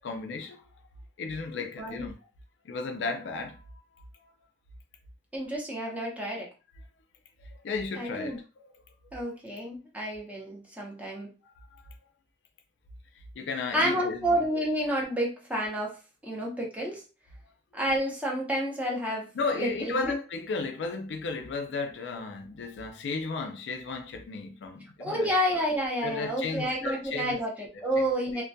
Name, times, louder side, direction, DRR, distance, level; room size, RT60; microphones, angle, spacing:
voice 1, 0.0-0.6 1.2-2.1 2.6-3.6 7.4-8.7 11.6-11.9 13.4-14.4 19.3-25.3 26.0-27.4 27.7-28.4, left 4 dB, 75° left, 0.4 m, -34 dB
voice 2, 1.8-2.1 5.3-6.5 8.0-8.4 9.1-11.3 13.7-15.9 16.2-17.0 17.7-20.1 25.0-28.4, equal, 10° right, 0.6 m, -30 dB
2.2 x 2.1 x 2.6 m
head